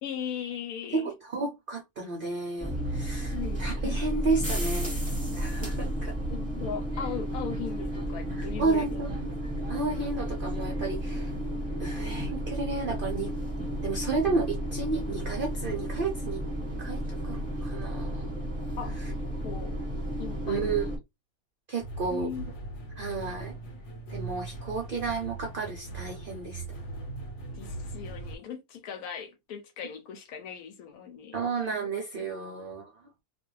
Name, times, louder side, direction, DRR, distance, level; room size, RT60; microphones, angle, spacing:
voice 1, 0.0-1.1 3.3-3.6 6.3-9.0 18.8-19.8 20.2-20.9 22.1-22.4 27.5-31.4 31.8-31.9, left 8 dB, 85° left, 1.1 m, -38 dB
voice 2, 0.9-4.9 5.3-6.1 8.6-11.3 11.8-13.3 13.8-16.4 16.8-18.2 20.5-20.9 21.7-22.3 22.9-23.6 24.1-26.6 31.3-32.9, right 3 dB, 55° right, 0.6 m, -32 dB
sound 1, 2.6-21.0, right 1 dB, 5° left, 1.2 m, -32 dB
sound 2, 21.8-28.4, right 2 dB, 60° left, 1.1 m, -40 dB
2.4 x 2.3 x 3.0 m
omnidirectional pair, 1.5 m